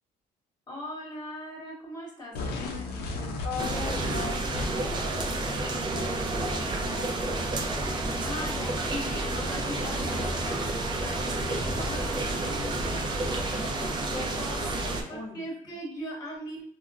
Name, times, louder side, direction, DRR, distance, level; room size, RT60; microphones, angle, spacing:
voice 1, 0.7-3.8 8.2-13.4 15.1-16.6, left 1 dB, 25° left, -2 dB, 1.1 m, -40 dB
sound 1, 2.3-5.0, left 3 dB, 70° left, 0.5 m, -35 dB
voice 2, 3.4-7.4 14.1-15.8, left 3 dB, 40° left, -6 dB, 0.9 m, -40 dB
sound 2, 3.6-15.0, right 2 dB, 25° right, 0.4 m, -30 dB
3.6 x 2.1 x 2.3 m, 0.63 s
cardioid pair, 110°, 17 cm